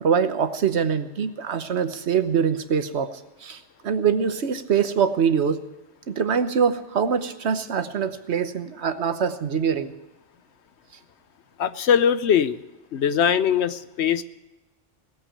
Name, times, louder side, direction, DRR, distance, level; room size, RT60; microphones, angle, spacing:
voice 1, 0.0-3.1 3.4-5.6 6.1-9.9, right 7 dB, 65° right, 10 dB, 1.2 m, -24 dB
voice 2, 11.6-12.6 12.9-14.2, left 8 dB, 65° left, 13 dB, 0.9 m, -21 dB
18.0 x 8.5 x 8.7 m, 1.0 s
omnidirectional pair, 1.2 m